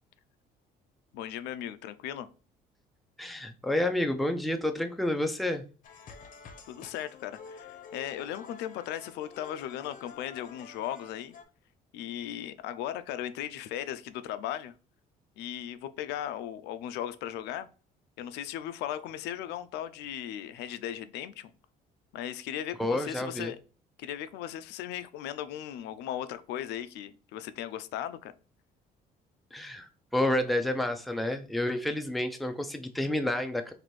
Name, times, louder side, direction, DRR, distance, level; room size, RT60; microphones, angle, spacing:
voice 1, 1.1-2.3 6.7-11.3 11.9-14.7 15.4-17.7 18.2-21.5 22.1-23.6 24.0-28.3, left 11 dB, 85° left, 0.4 m, -37 dB
voice 2, 3.2-5.6 22.8-23.5 29.5-33.7, left 1 dB, ahead, 0.4 m, -29 dB
sound 1, 5.8-11.4, left 5 dB, 50° left, 0.7 m, -49 dB
4.1 x 2.6 x 3.1 m
cardioid pair, 110°, 17 cm